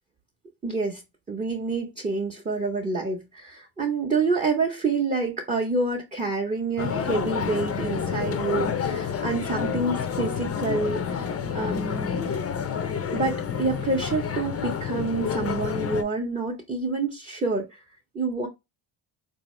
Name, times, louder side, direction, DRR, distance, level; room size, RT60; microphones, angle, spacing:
voice 1, 0.6-1.0 1.3-12.3 13.1-17.8 18.1-18.5, right 3 dB, 15° right, 0.6 m, -28 dB
sound 1, 6.8-16.0, left 7 dB, 30° left, 0.5 m, -29 dB
4.0 x 2.7 x 3.0 m
cardioid pair, 115°, 48 cm